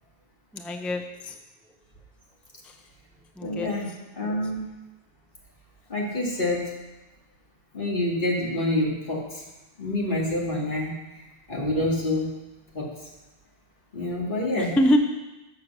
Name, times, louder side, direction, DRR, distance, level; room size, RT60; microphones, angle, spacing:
voice 1, 0.5-1.3 3.4-3.7 4.2-4.3 14.6-15.0, equal, ahead, 5 dB, 0.3 m, -25 dB
voice 2, 3.4-3.9 4.2-4.6 5.9-6.6 7.7-9.4 9.8-10.9 11.5-12.3 12.7-12.9 13.9-14.7, left 1 dB, 50° left, -4 dB, 2.3 m, -27 dB
7.3 x 6.2 x 6.6 m, 1.1 s
omnidirectional pair, 1.1 m